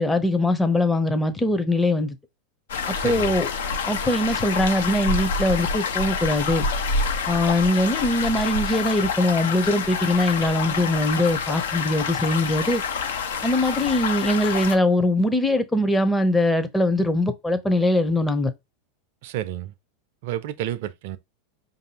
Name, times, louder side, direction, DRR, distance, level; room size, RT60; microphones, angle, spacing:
voice 1, 0.0-2.2 2.9-3.5 3.9-6.7 7.3-12.8 13.4-18.5, left 1 dB, 10° left, 0.6 m, -22 dB
sound 1, 2.7-14.8, left 5 dB, 75° left, 0.6 m, -27 dB
voice 2, 2.9-3.3 19.2-19.7 20.2-21.2, right 12 dB, 60° right, 0.5 m, -30 dB
4.9 x 2.7 x 2.8 m
hypercardioid pair, 90°, 0 cm